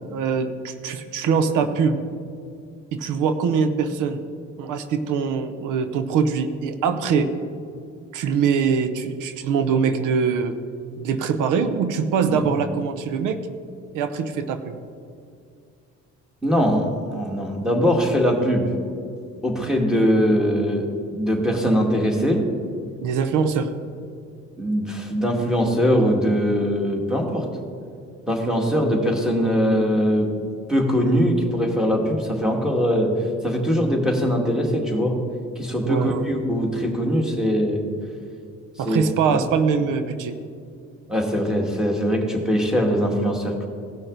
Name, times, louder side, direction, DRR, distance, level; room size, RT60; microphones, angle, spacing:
voice 1, 0.1-2.0 2.9-4.2 4.6-7.3 8.1-10.6 11.0-13.4 13.9-14.8 23.0-23.7 35.9-36.3 38.8-40.3, right 6 dB, 90° right, 10 dB, 0.7 m, -23 dB
voice 2, 16.4-18.7 19.4-22.5 24.6-27.5 28.3-30.3 30.7-33.1 33.4-35.2 35.6-37.9 38.8-39.0 39.4-39.5 41.1-43.7, equal, ahead, 0 dB, 2.0 m, -21 dB
17.5 x 6.2 x 3.9 m, 2.4 s
cardioid pair, 90°, 30 cm